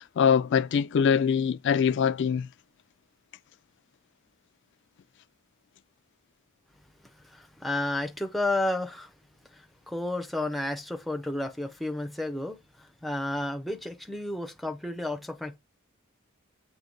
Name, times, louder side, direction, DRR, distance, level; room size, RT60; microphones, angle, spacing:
voice 1, 0.0-2.5, left 7 dB, 55° left, 0.3 m, -23 dB
voice 2, 7.2-9.1 9.5-15.6, left 1 dB, ahead, 0.5 m, -32 dB
7.6 x 2.7 x 5.2 m
head